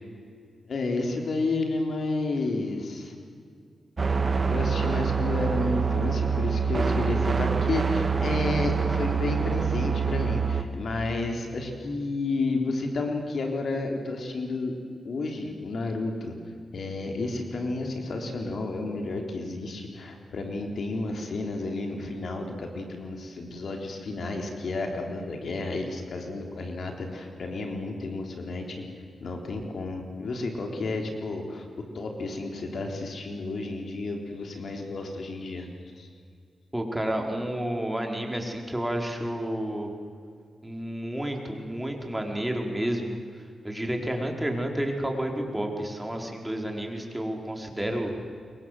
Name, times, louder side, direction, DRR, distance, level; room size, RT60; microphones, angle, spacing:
voice 1, 0.7-3.1 4.5-14.7 15.0-16.3 16.7-28.8 29.2-31.7 31.9-35.7 35.9-36.1, left 2 dB, 65° left, 3 dB, 3.9 m, -31 dB
sound 1, 4.0-10.6, right 5 dB, 40° right, 2.1 m, -25 dB
voice 2, 36.7-39.9 40.6-43.2 43.6-48.1, right 1 dB, 10° right, 2 dB, 4.9 m, -30 dB
27.0 x 23.0 x 7.9 m, 2.2 s
cardioid pair, 60°, 0 cm